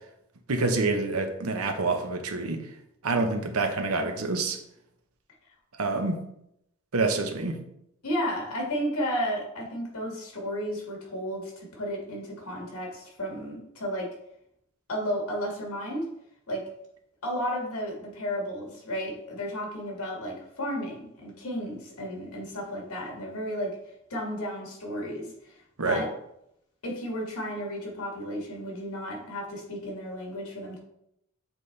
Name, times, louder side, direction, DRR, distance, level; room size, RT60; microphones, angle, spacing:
voice 1, 0.5-2.6 3.0-4.6 5.8-6.2 6.9-7.6 25.8-26.0, right 3 dB, 80° right, 6 dB, 0.8 m, -27 dB
voice 2, 3.1-3.4 8.0-14.1 14.9-16.1 16.5-16.7 17.2-23.8 24.1-25.6 25.8-26.1 26.8-30.8, equal, 85° left, -1 dB, 1.9 m, -33 dB
7.4 x 4.0 x 3.3 m, 0.78 s
head